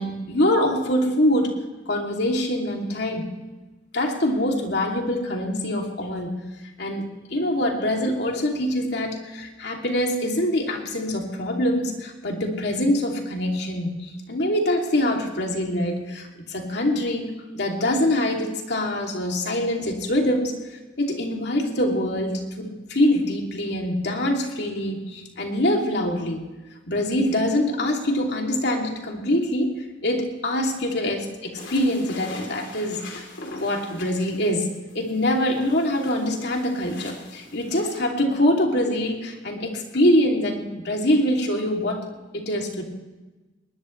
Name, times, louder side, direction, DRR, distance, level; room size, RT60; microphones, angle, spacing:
voice 1, 0.0-1.5 1.9-3.3 3.9-6.4 6.8-20.5 21.0-26.4 26.9-42.0 42.3-42.8, left 1 dB, 65° left, 1 dB, 2.9 m, -24 dB
sound 1, 31.6-38.0, left 2 dB, 85° left, 3.6 m, -42 dB
21.5 x 20.0 x 3.3 m, 1.2 s
head